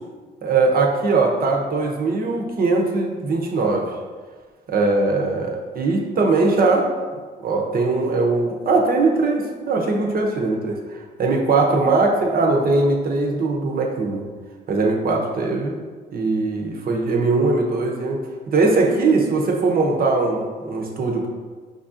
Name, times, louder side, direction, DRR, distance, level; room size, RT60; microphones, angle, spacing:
voice 1, 0.4-3.9 4.7-6.9 7.4-14.2 14.7-15.7 16.1-18.2 18.5-21.3, right 3 dB, 50° right, 1 dB, 0.7 m, -20 dB
5.2 x 2.4 x 2.6 m, 1.5 s
cardioid pair, 90°, 20 cm